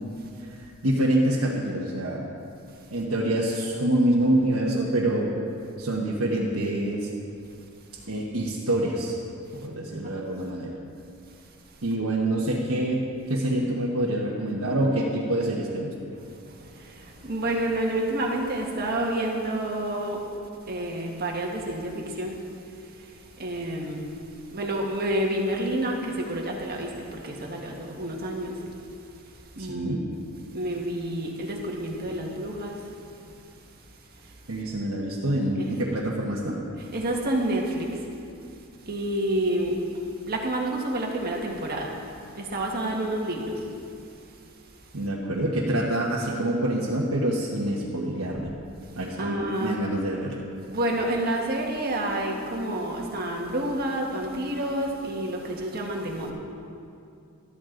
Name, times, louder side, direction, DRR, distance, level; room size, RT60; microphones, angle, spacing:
voice 1, 0.8-2.2 2.9-5.3 5.8-7.1 8.1-9.1 9.6-10.7 11.8-13.0 13.3-15.9 29.6-30.0 34.5-36.5 44.9-48.5 49.0-50.4, right 1 dB, 80° right, -5 dB, 1.3 m, -26 dB
voice 2, 16.3-20.2 20.7-22.4 22.8-24.1 24.5-28.6 29.5-30.2 30.5-32.8 33.3-33.4 34.2-34.3 35.6-35.7 36.8-38.1 38.8-42.0 42.3-43.6 46.3-46.4 49.2-49.8 50.6-56.3, right 1 dB, 45° right, 0 dB, 1.7 m, -29 dB
14.0 x 12.5 x 3.9 m, 2.5 s
head